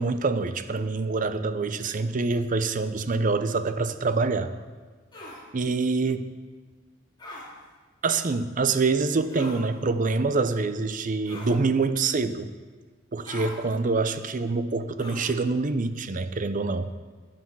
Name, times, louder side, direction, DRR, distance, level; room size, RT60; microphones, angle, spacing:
voice 1, 0.0-4.5 5.5-6.3 8.0-12.5 13.1-16.9, right 3 dB, 45° right, 11 dB, 0.6 m, -26 dB
sound 1, 5.1-5.4 7.2-7.5 9.3-9.6 11.3-11.6 13.2-13.6 15.0-15.3, left 1 dB, 25° left, 2.5 m, -40 dB
13.0 x 10.5 x 4.7 m, 1.4 s
head